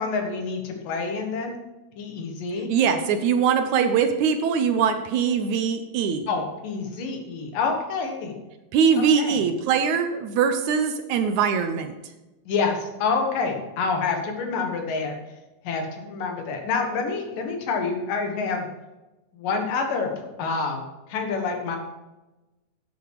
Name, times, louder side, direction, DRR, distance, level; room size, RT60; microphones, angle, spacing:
voice 1, 0.0-1.6 2.0-2.7 6.3-8.3 9.2-9.4 12.5-15.2 15.6-18.7 19.3-20.1 20.4-20.8 21.1-21.8, left 4 dB, 85° left, 3 dB, 3.2 m, -27 dB
voice 2, 2.7-6.3 8.7-11.9, right 6 dB, 70° right, 8 dB, 2.0 m, -22 dB
10.5 x 9.0 x 4.7 m, 1.1 s
omnidirectional pair, 3.8 m